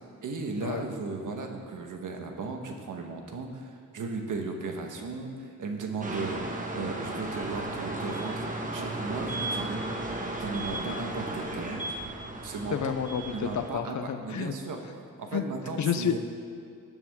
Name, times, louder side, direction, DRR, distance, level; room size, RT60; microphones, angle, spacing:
voice 1, 0.2-6.4 6.7-8.5 8.7-9.8 10.4-11.8 12.4-13.0 13.3-14.8 15.2-16.2, right 4 dB, 65° right, 3 dB, 1.4 m, -36 dB
sound 1, 6.0-13.7, right 2 dB, 25° right, 1.2 m, -35 dB
voice 2, 12.7-14.5 15.3-15.4 15.8-16.2, left 8 dB, 55° left, 9 dB, 0.7 m, -30 dB
19.0 x 7.1 x 3.7 m, 2.3 s
wide cardioid pair, 125°, 34 cm